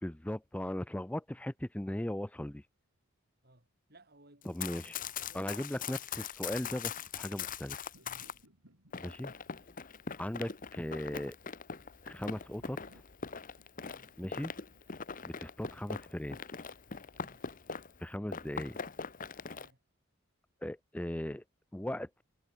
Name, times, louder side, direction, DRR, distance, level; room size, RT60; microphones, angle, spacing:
voice 1, 0.0-2.6 4.5-5.0 5.3-7.9 9.0-9.3 10.2-11.4 12.1-12.8 14.2-14.5 15.2-16.4 18.0-18.8 20.6-21.4 21.7-22.2, left 1 dB, 5° left, 0.5 m, -38 dB
voice 2, 3.4-4.6 5.1-5.5 8.0-8.6 9.8-9.9 13.8-14.1 17.1-17.5 19.4-19.8, right 1 dB, 45° right, 6.4 m, -63 dB
Run, 4.4-8.4 8.9-18.0 18.3-19.7, left 6 dB, 40° left, 1.0 m, -42 dB
sound 1, 7.0-16.3, right 1 dB, 90° right, 6.5 m, -66 dB
head